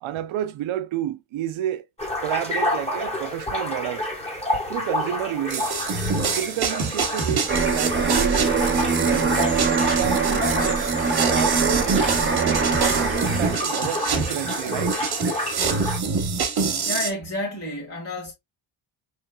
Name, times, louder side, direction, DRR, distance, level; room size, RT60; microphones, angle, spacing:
voice 1, 0.0-1.9 2.2-4.1 4.7-5.7 6.4-8.5 9.0-10.5 11.2-15.0, right 12 dB, 70° right, 0.7 m, -30 dB
sound 1, 2.0-16.0, left 1 dB, 15° left, 1.3 m, -29 dB
sound 2, 5.5-17.1, right 5 dB, 50° right, 1.3 m, -26 dB
sound 3, 7.5-13.7, right 5 dB, 25° right, 1.0 m, -23 dB
voice 2, 16.9-18.3, left 2 dB, 30° left, 1.9 m, -30 dB
4.5 x 3.3 x 2.2 m
cardioid pair, 95°, 49 cm